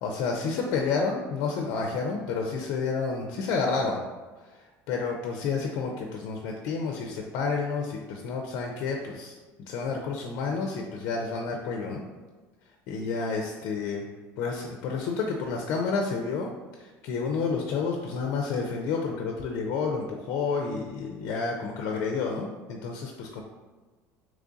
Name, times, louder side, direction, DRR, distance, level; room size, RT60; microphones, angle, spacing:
voice 1, 0.0-4.0 4.9-9.3 9.7-12.0 12.9-14.1 14.4-16.5 16.8-23.4, left 4 dB, 65° left, 1 dB, 0.4 m, -30 dB
3.0 x 2.4 x 3.9 m, 1.3 s
cardioid pair, 130°, 7 cm